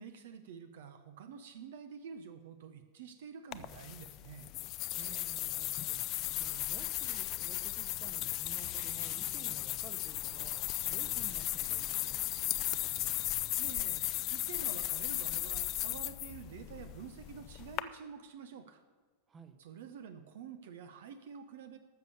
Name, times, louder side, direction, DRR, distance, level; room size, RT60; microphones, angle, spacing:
voice 1, 0.0-4.5 13.6-14.0 14.3-18.8 19.6-21.8, right 7 dB, 55° right, 9 dB, 0.7 m, -48 dB
sound 1, 3.5-17.8, left 16 dB, 40° left, 0.5 m, -36 dB
sound 2, 4.8-5.3 5.6-5.7 6.4-7.4 8.4-9.2 9.4-9.5 10.5-11.6 12.7-13.3, right 1 dB, 80° right, 3.4 m, -56 dB
voice 2, 4.9-12.3 19.3-19.6, right 4 dB, 20° right, 9 dB, 1.0 m, -54 dB
13.0 x 6.7 x 6.9 m, 1.4 s
figure-of-eight pair, 90°, 0 cm